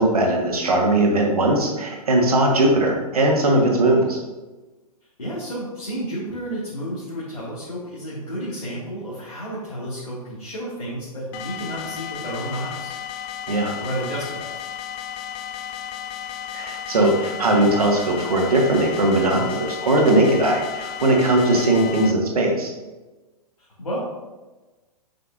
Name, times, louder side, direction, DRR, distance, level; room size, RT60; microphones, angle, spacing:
voice 1, 0.0-4.2 13.5-13.8 16.5-22.7, right 1 dB, 70° right, 0 dB, 1.6 m, -19 dB
voice 2, 5.2-12.9 13.8-14.6 23.6-24.0, right 1 dB, 75° left, -8 dB, 2.0 m, -31 dB
sound 1, 11.3-22.1, left 9 dB, 25° left, 0.4 m, -34 dB
7.8 x 5.6 x 2.5 m, 1.2 s
figure-of-eight pair, 110°, 20 cm